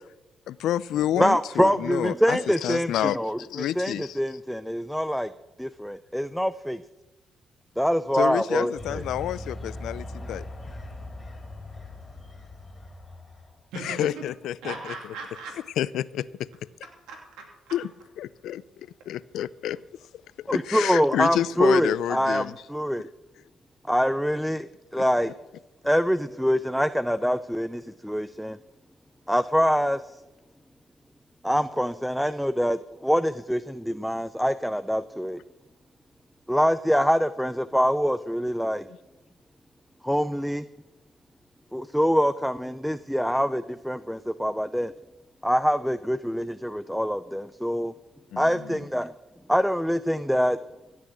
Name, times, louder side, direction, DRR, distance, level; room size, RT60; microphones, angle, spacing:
voice 1, 0.5-4.2 8.1-10.4 13.8-14.9 15.8-16.5 17.7-17.9 18.2-18.6 19.1-19.8 20.4-22.5 25.0-25.1 48.3-48.8, left 11 dB, 80° left, 19 dB, 0.4 m, -29 dB
voice 2, 1.2-5.3 5.6-6.8 7.8-9.0 20.5-23.1 23.9-25.3 25.8-28.6 29.3-30.0 31.4-35.4 36.5-38.9 40.0-40.7 41.7-44.9 45.4-47.9 48.4-49.1 49.5-50.6, equal, ahead, 13 dB, 0.4 m, -25 dB
sound 1, 8.8-13.6, left 2 dB, 25° left, 2.5 m, -40 dB
voice 3, 13.7-14.2 14.6-15.5 17.1-17.8, right 4 dB, 90° right, 0 dB, 2.8 m, -38 dB
16.0 x 6.2 x 8.7 m, 1.1 s
cardioid pair, 80°, 0 cm